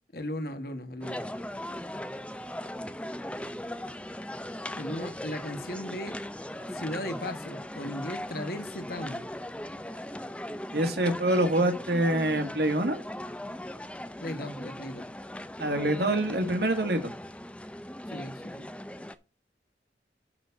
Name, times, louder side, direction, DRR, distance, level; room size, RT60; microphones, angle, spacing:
voice 1, 0.1-1.2 4.8-6.2 6.7-9.2 11.1-11.2 14.2-15.1 18.1-18.7, left 1 dB, 55° left, 1.5 m, -37 dB
sound 1, 1.0-19.2, left 1 dB, 5° left, 0.5 m, -39 dB
voice 2, 10.7-13.0 15.6-17.1, right 1 dB, 65° right, 1.7 m, -25 dB
11.5 x 4.1 x 5.8 m
head